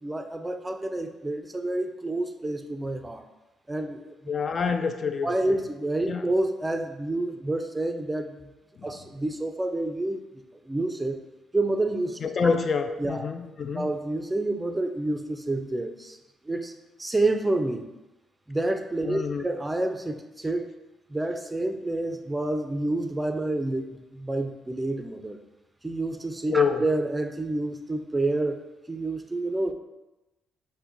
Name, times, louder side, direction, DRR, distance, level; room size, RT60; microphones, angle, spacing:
voice 1, 0.0-3.2 3.7-4.1 5.2-8.5 8.8-10.2 10.7-11.2 11.5-12.2 13.0-13.2 13.7-16.2 16.5-16.7 17.0-17.9 18.5-20.7 21.1-25.4 25.8-28.6 28.9-29.7, right 2 dB, 15° right, 7 dB, 0.4 m, -28 dB
voice 2, 4.3-5.3 6.1-6.3 8.8-8.9 12.2-13.9 19.1-19.4 26.5-26.8, left 5 dB, 45° left, 8 dB, 0.4 m, -26 dB
5.8 x 2.2 x 3.9 m, 1.0 s
cardioid pair, 90°, 0 cm